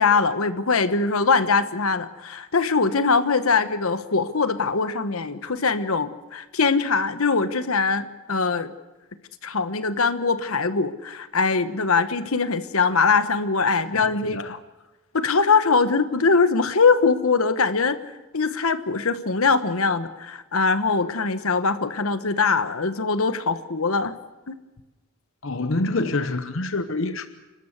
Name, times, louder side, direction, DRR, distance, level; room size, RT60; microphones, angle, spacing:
voice 1, 0.0-8.7 9.4-14.6 15.1-18.0 18.3-24.1 24.5-24.6, left 4 dB, 85° left, 1.2 m, -22 dB
voice 2, 14.2-14.5 25.4-27.3, left 2 dB, 65° left, 1.0 m, -26 dB
29.5 x 13.0 x 8.1 m
head